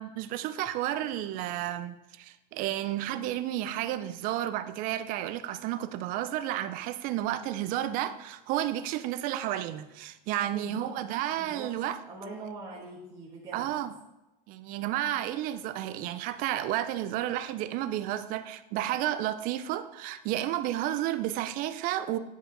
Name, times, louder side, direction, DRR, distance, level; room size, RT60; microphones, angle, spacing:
voice 1, 0.0-12.0 13.5-13.9 14.5-22.2, right 13 dB, 40° right, 12 dB, 0.5 m, -32 dB
voice 2, 10.4-11.0 11.3-11.7 12.1-13.7, right 3 dB, 15° right, -7 dB, 1.3 m, -43 dB
9.9 x 5.0 x 3.8 m, 1.0 s
supercardioid pair, 155°, 21 cm